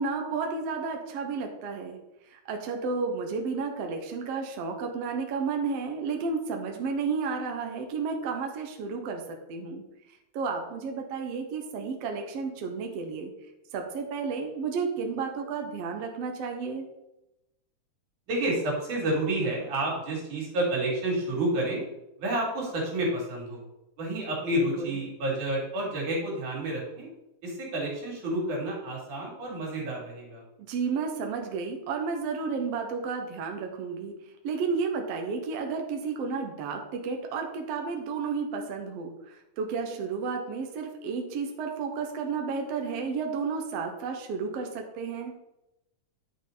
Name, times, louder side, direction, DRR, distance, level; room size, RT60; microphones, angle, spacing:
voice 1, 0.0-2.0 2.2-9.8 10.3-13.3 13.7-16.9 24.5-24.9 30.6-34.1 34.4-45.3, right 5 dB, 65° right, 3 dB, 1.9 m, -32 dB
voice 2, 18.3-21.8 22.2-23.6 24.0-27.1 27.4-30.4, right 1 dB, 80° right, -2 dB, 4.0 m, -30 dB
10.5 x 6.3 x 3.9 m, 0.91 s
omnidirectional pair, 3.4 m